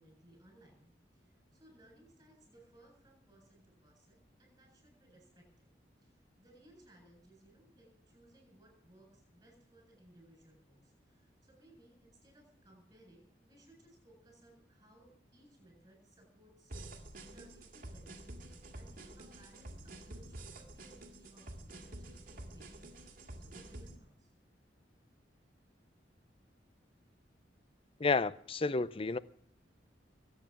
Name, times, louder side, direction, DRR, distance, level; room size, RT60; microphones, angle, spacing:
voice 1, 0.0-5.7 6.0-17.0 17.3-18.3 18.7-23.0 23.4-24.3, right 1 dB, 20° right, 7.9 m, -63 dB
sound 1, 16.7-24.0, right 1 dB, 50° right, 2.2 m, -49 dB
voice 2, 28.0-29.2, left 4 dB, 30° left, 0.5 m, -31 dB
22.5 x 9.0 x 6.0 m
head